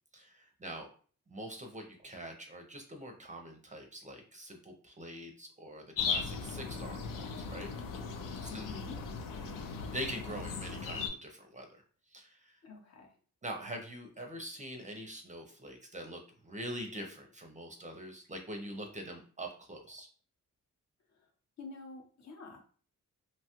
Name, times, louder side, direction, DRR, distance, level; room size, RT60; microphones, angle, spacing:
voice 1, 0.1-0.9 1.3-7.7 8.5-8.6 9.9-11.8 12.1-12.6 13.4-20.1, right 1 dB, 25° right, 3 dB, 0.5 m, -44 dB
sound 1, 6.0-11.1, left 5 dB, 90° left, 0.5 m, -38 dB
voice 2, 8.5-9.0 12.6-13.1 21.1-21.3 21.6-22.6, left 3 dB, 55° left, 2 dB, 0.8 m, -48 dB
2.9 x 2.3 x 2.8 m, 0.42 s
wide cardioid pair, 120°, 32 cm